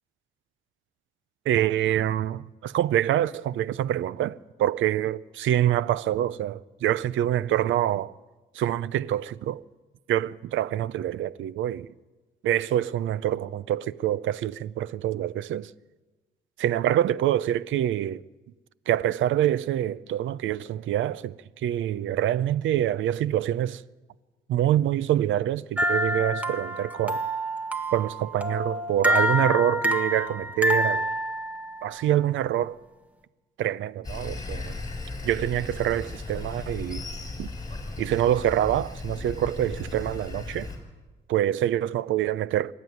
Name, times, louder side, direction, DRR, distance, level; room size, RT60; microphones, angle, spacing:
voice 1, 1.5-8.1 8.5-9.6 10.1-11.9 12.4-15.7 16.6-18.2 18.9-23.8 24.5-27.2 27.9-31.1 31.8-32.8 33.6-34.8 35.2-37.1 37.4-37.5 38.0-40.7 41.3-42.7, right 12 dB, 75° right, 0.6 m, -26 dB
sound 1, 25.8-32.0, equal, 5° right, 1.9 m, -27 dB
Sawing, 34.0-40.8, left 3 dB, 20° left, 7.1 m, -36 dB
25.0 x 12.5 x 9.5 m
cardioid pair, 90°, 20 cm